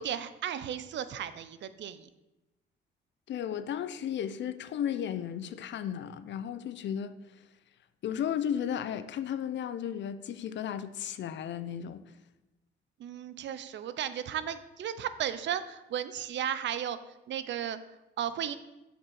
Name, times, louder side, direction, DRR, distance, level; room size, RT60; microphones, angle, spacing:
voice 1, 0.0-2.1 13.0-17.0 17.3-17.8 18.2-18.6, right 9 dB, 65° right, 0.6 m, -35 dB
voice 2, 3.3-7.2 8.0-12.0, left 9 dB, 65° left, 0.7 m, -34 dB
7.4 x 5.2 x 6.4 m
cardioid pair, 90°, 20 cm